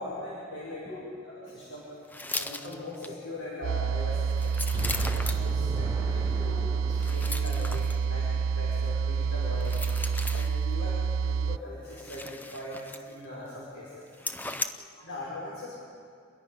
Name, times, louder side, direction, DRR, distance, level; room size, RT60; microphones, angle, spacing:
voice 1, 0.0-0.9 1.5-1.8 2.3-4.5 5.1-9.7 10.3-14.6 15.0-15.9, left 1 dB, 75° left, -7 dB, 6.2 m, -40 dB
voice 2, 0.8-1.7 2.6-2.8 4.8-5.3 7.2-7.3 13.4-13.6 14.5-15.1, left 1 dB, 25° left, -4 dB, 7.7 m, -48 dB
sound 1, 2.1-3.1 4.1-5.5 6.9-8.0 9.6-10.6 11.9-13.2 13.5-13.6 14.1-14.7, left 2 dB, 10° left, 0.6 m, -37 dB
sound 2, 3.6-11.6, right 6 dB, 80° right, 0.5 m, -28 dB
Explosion, 4.7-8.7 9.1-9.2, equal, 20° right, 7.3 m, -38 dB
29.5 x 22.0 x 5.8 m, 2.3 s
head